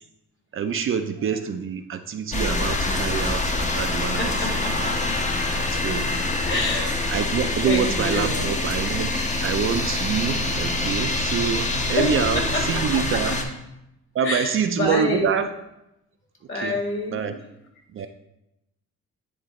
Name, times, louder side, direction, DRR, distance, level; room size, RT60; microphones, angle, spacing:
voice 1, 0.5-4.9 5.7-6.1 7.1-9.1 9.4-13.3 14.1-15.5 16.5-16.8 17.1-17.3 17.9-18.1, right 7 dB, 45° right, 7 dB, 0.5 m, -26 dB
sound 1, 2.3-13.4, left 2 dB, 25° left, 0.8 m, -25 dB
voice 2, 4.2-4.7 5.1-5.4 6.5-7.1 7.6-8.5 12.0-12.1 12.3-12.8 13.1-13.4 14.2-15.3 16.5-17.3 18.0-18.1, left 2 dB, 40° left, 1 dB, 1.8 m, -28 dB
9.7 x 4.0 x 3.0 m, 0.87 s
cardioid pair, 90°, 30 cm